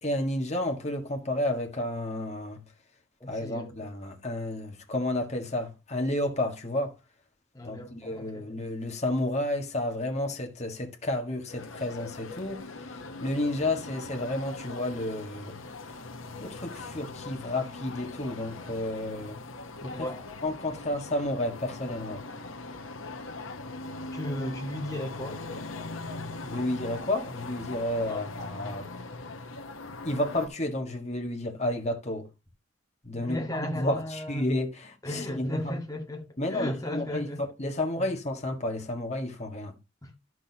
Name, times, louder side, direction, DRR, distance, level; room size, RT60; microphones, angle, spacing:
voice 1, 0.0-2.6 3.3-6.9 7.6-12.7 13.2-15.6 16.4-19.4 19.8-20.1 20.4-22.2 26.5-28.9 30.0-32.3 33.0-35.8 36.4-39.7, left 1 dB, 35° left, 1.7 m, -31 dB
voice 2, 3.2-3.7 7.5-8.5 19.9-20.2 24.1-25.4 26.0-26.3 28.1-28.3 33.1-34.5 35.0-37.5 40.0-40.1, left 1 dB, 20° left, 2.0 m, -36 dB
sound 1, 11.5-30.5, left 3 dB, 85° left, 1.0 m, -41 dB
11.5 x 6.2 x 2.8 m
head